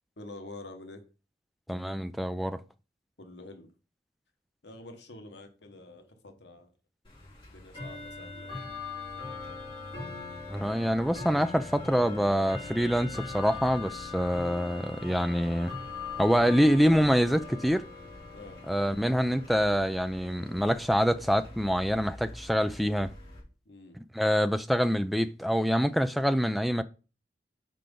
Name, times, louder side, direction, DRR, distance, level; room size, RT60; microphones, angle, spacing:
voice 1, 0.2-1.0 3.2-3.7 4.6-6.7 7.5-8.8 9.2-9.7 18.3-18.6 23.6-24.0, left 2 dB, 85° left, 1.2 m, -47 dB
voice 2, 1.7-2.6 10.5-15.7 16.2-17.8 18.7-23.1 23.9-26.8, equal, ahead, 0.4 m, -26 dB
Bell / Tick-tock, 7.0-23.4, left 3 dB, 30° left, 4.0 m, -41 dB
5.9 x 4.9 x 5.3 m
head